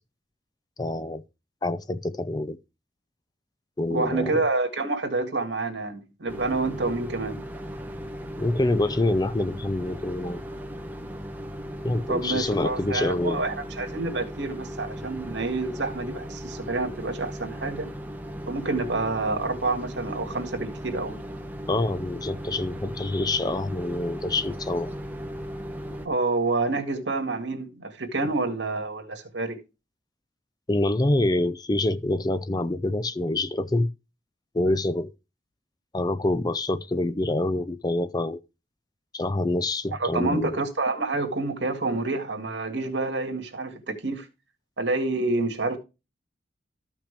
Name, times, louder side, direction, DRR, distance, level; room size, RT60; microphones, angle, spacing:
voice 1, 0.8-1.2 1.6-2.6 3.8-4.4 8.4-10.4 11.8-13.4 21.7-24.9 30.7-33.9 34.5-35.1 35.9-38.4 39.1-40.5, left 2 dB, 20° left, 0.5 m, -26 dB
voice 2, 3.9-7.4 12.1-17.9 18.5-21.2 26.0-29.6 40.0-44.3 44.8-45.8, right 3 dB, 80° right, 2.0 m, -28 dB
sound 1, 6.3-26.1, equal, 10° right, 1.2 m, -37 dB
13.5 x 5.9 x 3.3 m
head